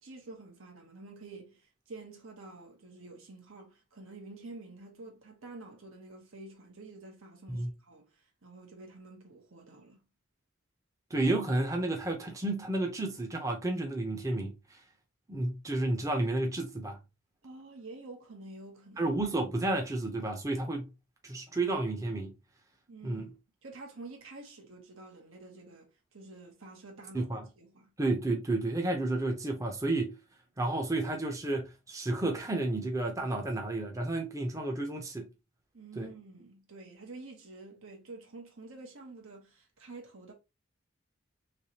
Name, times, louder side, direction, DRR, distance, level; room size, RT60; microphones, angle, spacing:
voice 1, 0.0-10.0 17.4-19.1 22.9-23.3 23.6-27.9 35.7-40.3, right 2 dB, 85° right, 1.2 m, -49 dB
voice 2, 11.1-14.8 15.3-17.0 19.0-20.9 21.2-22.3 23.0-23.3 27.1-27.4 28.0-30.2 30.6-35.3 36.0-36.1, right 2 dB, 15° right, 0.5 m, -31 dB
3.3 x 3.1 x 2.8 m
head